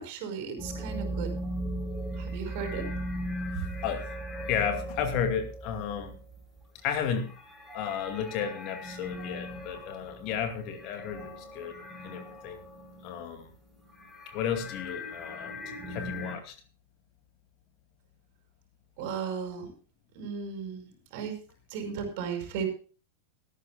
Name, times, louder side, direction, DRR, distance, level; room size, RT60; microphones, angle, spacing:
voice 1, 0.0-1.3 2.1-2.9 19.0-19.7 20.1-21.4 21.7-22.7, right 6 dB, 50° right, 5 dB, 5.2 m, -35 dB
sound 1, 0.6-13.4 13.7-16.4, equal, 5° left, 5.5 m, -38 dB
voice 2, 4.5-6.1 6.8-7.3 7.7-12.6 13.0-13.5 14.3-16.5, left 8 dB, 40° left, 7 dB, 2.4 m, -33 dB
18.5 x 14.0 x 2.3 m, 0.37 s
figure-of-eight pair, 90°, 0 cm